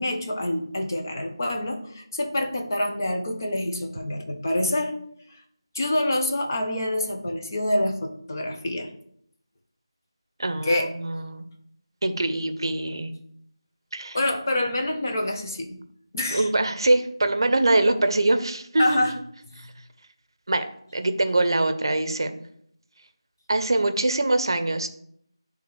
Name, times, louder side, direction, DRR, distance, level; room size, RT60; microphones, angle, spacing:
voice 1, 0.0-4.9 5.3-5.4 5.7-8.9 10.6-10.9 14.1-15.8 16.1-16.5 18.8-19.1, left 1 dB, 35° left, 3 dB, 0.8 m, -26 dB
voice 2, 10.4-11.5 12.0-13.1 13.9-14.2 16.3-19.1 19.6-19.7 20.5-22.4 23.5-24.9, right 2 dB, 55° right, 9 dB, 0.6 m, -23 dB
9.2 x 3.5 x 3.1 m, 0.69 s
figure-of-eight pair, 170°, 3 cm